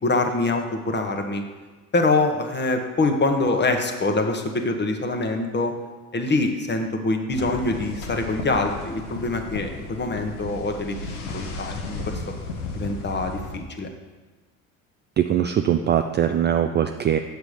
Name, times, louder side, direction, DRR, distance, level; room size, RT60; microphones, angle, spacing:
voice 1, 0.0-1.4 1.9-5.7 6.1-11.0 11.3-12.2 12.8-13.9, left 2 dB, 25° left, 4 dB, 1.2 m, -24 dB
sound 1, 7.3-13.6, left 3 dB, 75° left, 1.2 m, -34 dB
voice 2, 15.2-17.2, right 9 dB, 25° right, 7 dB, 0.4 m, -21 dB
8.1 x 6.3 x 5.0 m, 1.3 s
hypercardioid pair, 60°, 44 cm